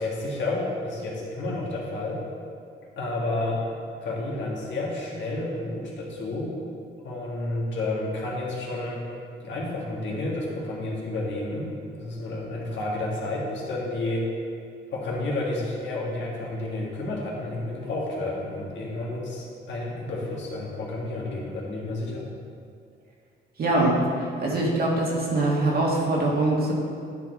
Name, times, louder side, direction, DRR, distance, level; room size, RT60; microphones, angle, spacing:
voice 1, 0.0-2.2 3.0-3.6 4.0-6.5 7.0-9.0 9.4-11.7 11.9-14.2 14.9-22.3, left 2 dB, 70° left, -4 dB, 1.8 m, -30 dB
voice 2, 23.6-24.0 24.4-26.7, right 2 dB, 50° right, -3 dB, 1.8 m, -23 dB
10.0 x 4.8 x 3.8 m, 2.4 s
cardioid pair, 90°, 20 cm